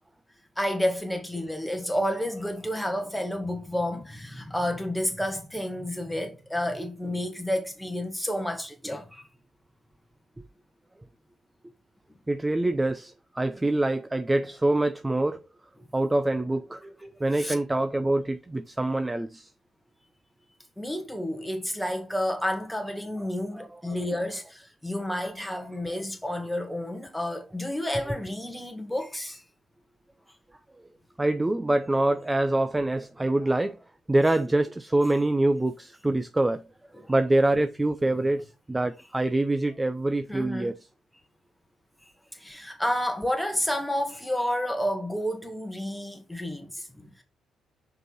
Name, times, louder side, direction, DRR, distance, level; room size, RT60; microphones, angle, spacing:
voice 1, 0.6-9.2 17.4-17.5 20.8-29.4 37.0-37.1 40.3-40.7 42.3-47.2, left 1 dB, 5° left, 1.8 m, -30 dB
voice 2, 12.3-15.4 15.9-19.5 23.6-24.0 31.2-33.8 34.1-36.7 37.1-40.8, right 2 dB, 15° right, 0.5 m, -25 dB
5.2 x 4.8 x 4.1 m
cardioid pair, 90°, 0 cm